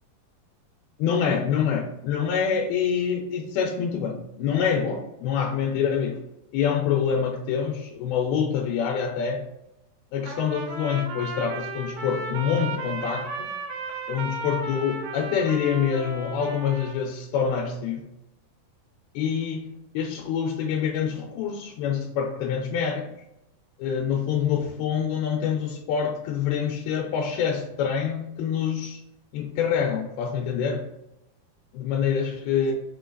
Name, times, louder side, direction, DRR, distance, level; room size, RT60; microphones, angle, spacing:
voice 1, 1.0-6.2 6.5-9.4 10.1-13.5 14.1-18.1 19.2-23.1 23.8-29.0 29.3-30.9 31.7-32.8, left 7 dB, 85° left, 1 dB, 2.5 m, -26 dB
Trumpet, 10.2-17.0, right 2 dB, 75° right, 1.8 m, -35 dB
6.1 x 2.3 x 3.8 m, 0.88 s
omnidirectional pair, 4.3 m